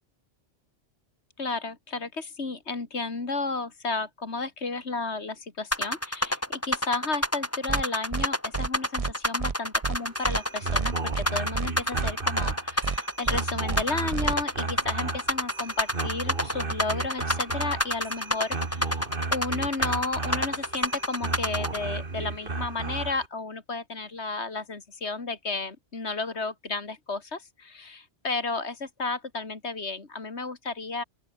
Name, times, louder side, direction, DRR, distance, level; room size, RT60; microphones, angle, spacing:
voice 1, 1.4-31.0, left 3 dB, 70° left, 2.8 m, -33 dB
sound 1, 5.7-21.8, left 1 dB, 10° left, 3.4 m, -28 dB
sound 2, 7.7-7.8 8.1-8.3 8.5-8.7 9.0-9.1 9.4-9.5 9.8-10.0 10.2-10.4 10.7-11.3 11.5-11.7 12.0-12.1 12.4-12.5 12.8-13.0 13.2-13.4 13.7-13.8 14.1-14.3, right 5 dB, 35° right, 0.9 m, -30 dB
sound 3, 10.0-23.3, right 3 dB, 50° right, 2.3 m, -34 dB
open air
omnidirectional pair, 1.2 m